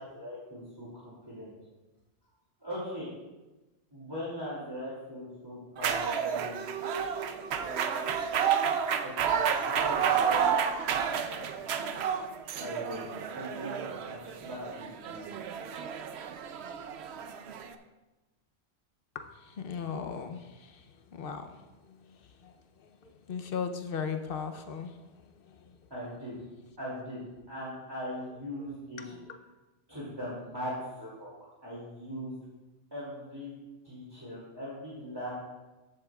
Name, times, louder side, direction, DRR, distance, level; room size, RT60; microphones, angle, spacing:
voice 1, 0.0-1.5 2.6-3.1 3.9-6.6 7.5-8.1 9.0-10.5 12.4-13.0 13.3-15.2 25.9-26.4 26.8-27.2 27.5-29.1 29.9-31.3 31.6-32.3 32.9-33.5 33.8-35.3, equal, 20° right, -9 dB, 2.5 m, -40 dB
sound 1, 5.8-17.7, right 7 dB, 70° right, 0.8 m, -31 dB
voice 2, 19.1-20.8 21.1-22.0 22.4-22.5 22.8-22.9 23.3-25.0 25.5-25.6 29.0-29.1, left 6 dB, 55° left, 7 dB, 0.8 m, -37 dB
14.5 x 7.9 x 2.4 m, 1.1 s
omnidirectional pair, 1.2 m